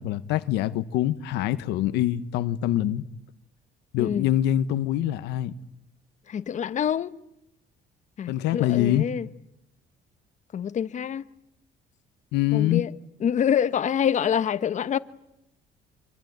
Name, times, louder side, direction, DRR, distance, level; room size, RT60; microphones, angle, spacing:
voice 1, 0.0-3.0 3.9-5.5 8.3-9.1 12.3-12.8, left 13 dB, 90° left, 1.2 m, -24 dB
voice 2, 6.3-7.1 8.2-9.3 10.5-11.2 12.5-12.9 13.2-15.0, left 8 dB, 45° left, 1.2 m, -26 dB
25.5 x 24.5 x 9.5 m
cardioid pair, 110°, 17 cm